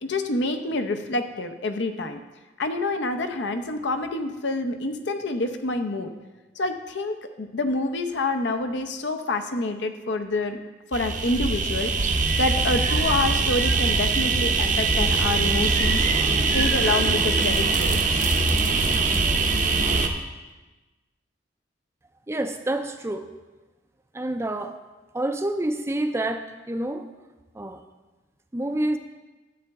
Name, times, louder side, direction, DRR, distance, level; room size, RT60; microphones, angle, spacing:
voice 1, 0.0-2.2 2.6-6.1 6.6-10.6 10.9-12.1 12.4-16.0 16.5-18.2, left 2 dB, 65° left, 7 dB, 0.7 m, -27 dB
sound 1, 10.9-20.1, right 3 dB, 40° right, 0.7 m, -22 dB
voice 2, 22.3-23.3 24.1-24.8 25.1-27.1 27.5-27.8 28.5-29.0, right 1 dB, 15° right, 7 dB, 0.4 m, -28 dB
12.0 x 7.8 x 3.5 m, 1.2 s
head